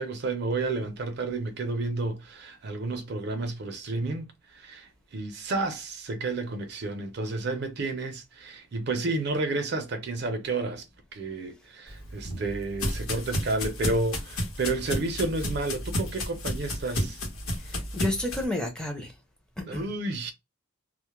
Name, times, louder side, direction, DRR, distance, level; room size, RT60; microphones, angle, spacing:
voice 1, 0.0-10.8 11.1-17.2 19.7-20.3, right 3 dB, 50° right, 0.4 m, -31 dB
sound 1, 11.9-18.5, equal, 85° left, 0.9 m, -32 dB
voice 2, 17.5-19.2 19.6-19.9, left 1 dB, 5° left, 0.5 m, -31 dB
2.1 x 2.1 x 2.9 m
head